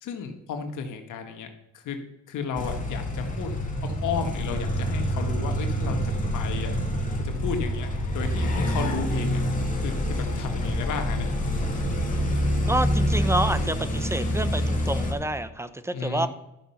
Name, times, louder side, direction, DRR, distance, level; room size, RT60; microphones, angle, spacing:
voice 1, 0.0-1.5 1.7-2.0 2.3-3.5 3.8-6.0 6.3-6.7 7.2-9.4 9.8-11.3 15.9-16.3, left 6 dB, 80° left, 5 dB, 1.4 m, -33 dB
sound 1, 2.5-15.1, equal, 25° left, 2.3 m, -26 dB
voice 2, 12.7-16.3, right 1 dB, 10° right, 13 dB, 0.7 m, -28 dB
12.0 x 5.3 x 5.7 m, 0.92 s
cardioid pair, 90°, 30 cm